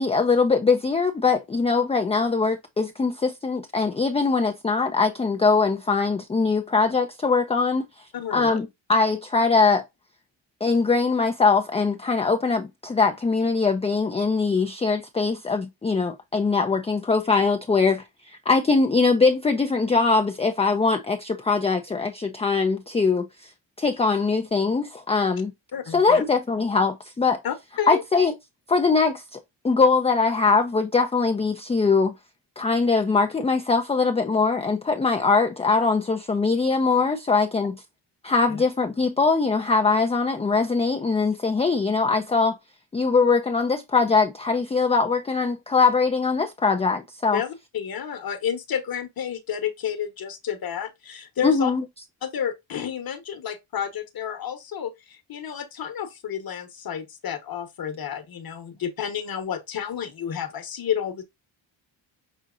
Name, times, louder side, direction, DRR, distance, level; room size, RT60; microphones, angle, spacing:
voice 1, 0.0-7.8 8.3-9.8 10.6-23.5 23.8-25.5 25.9-27.4 27.9-28.3 28.7-29.4 29.6-32.1 32.6-37.8 38.2-42.6 42.9-47.4 51.4-51.8, left 4 dB, 15° left, 0.4 m, -22 dB
voice 2, 8.1-8.6 25.7-26.2 27.4-28.0 38.5-38.6 47.3-51.7 52.2-61.2, left 9 dB, 50° left, 1.1 m, -31 dB
6.1 x 2.8 x 2.4 m
cardioid pair, 105°, 48 cm